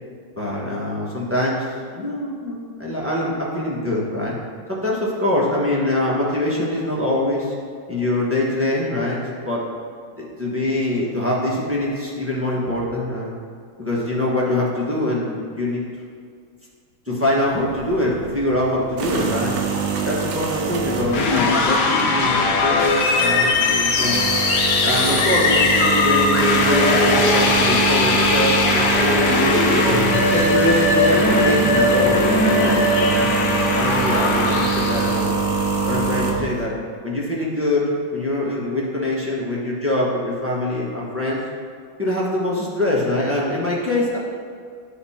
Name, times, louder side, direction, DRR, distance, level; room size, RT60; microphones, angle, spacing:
voice 1, 0.4-1.7 1.9-4.3 4.7-7.5 7.9-9.6 10.2-13.4 13.8-15.8 17.1-19.6 20.0-24.3 24.8-30.0 30.3-33.3 33.8-35.4 35.8-36.7 37.0-41.4 42.0-44.2, left 1 dB, 10° right, -5 dB, 1.0 m, -24 dB
sound 1, 17.5-36.6, right 5 dB, 80° right, 1.7 m, -24 dB
sound 2, 21.1-35.3, left 3 dB, 65° left, 1.2 m, -19 dB
11.5 x 4.1 x 4.3 m, 2.2 s
omnidirectional pair, 2.2 m